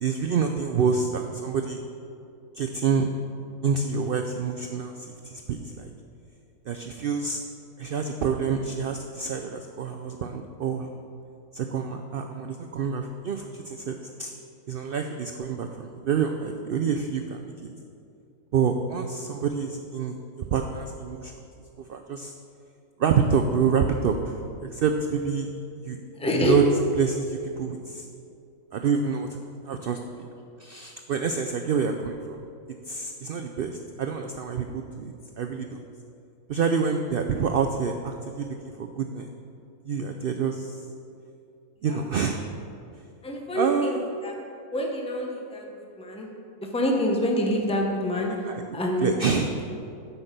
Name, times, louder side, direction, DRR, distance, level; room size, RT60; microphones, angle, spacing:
voice 1, 0.0-1.8 2.5-3.1 3.6-5.9 6.7-7.4 7.8-11.0 11.5-14.3 14.7-17.5 18.5-21.3 21.8-22.3 23.0-25.5 25.8-26.0 26.3-26.7 27.0-28.1 28.7-29.4 29.6-30.3 30.6-32.4 32.9-35.8 36.5-39.3 39.9-40.8 41.8-42.4 43.5-44.0 48.4-48.6 49.0-49.5, right 6 dB, 90° right, 5 dB, 0.5 m, -27 dB
voice 2, 26.2-26.6 41.8-42.0 43.2-44.4 44.7-46.3 46.6-48.3 48.7-49.1, left 1 dB, 5° left, 0 dB, 0.7 m, -26 dB
8.2 x 5.8 x 6.6 m, 2.5 s
omnidirectional pair, 1.5 m